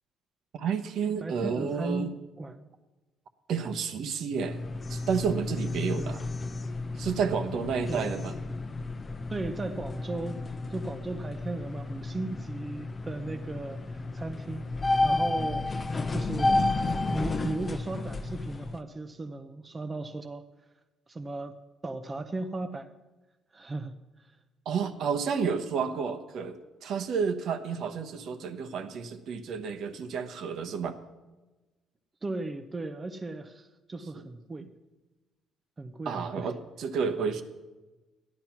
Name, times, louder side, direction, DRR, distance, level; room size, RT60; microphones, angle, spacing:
voice 1, 0.5-2.1 3.5-4.6 4.9-6.2 7.0-8.3 24.6-31.0 36.0-37.4, right 6 dB, 60° right, 8 dB, 1.1 m, -31 dB
voice 2, 1.2-2.1 2.4-2.6 5.9-6.2 7.9-8.2 9.3-14.7 15.0-16.6 17.1-20.4 21.1-21.5 21.8-22.9 23.5-24.0 32.2-34.7 35.8-36.5, right 2 dB, 20° right, 8 dB, 0.6 m, -36 dB
sound 1, 4.3-18.8, left 2 dB, 25° left, 0.7 m, -32 dB
14.0 x 11.0 x 5.9 m, 1.2 s
cardioid pair, 140°, 0 cm